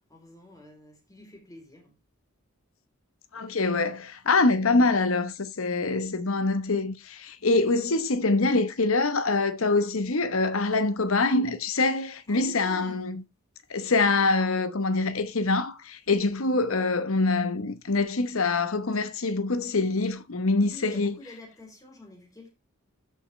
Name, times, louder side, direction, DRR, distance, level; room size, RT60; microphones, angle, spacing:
voice 1, 0.1-2.0 12.3-13.1 20.5-22.5, left 2 dB, 15° left, 3.3 m, -47 dB
voice 2, 3.3-13.2 13.7-21.1, left 3 dB, 70° left, 1.0 m, -25 dB
13.5 x 5.5 x 3.2 m
head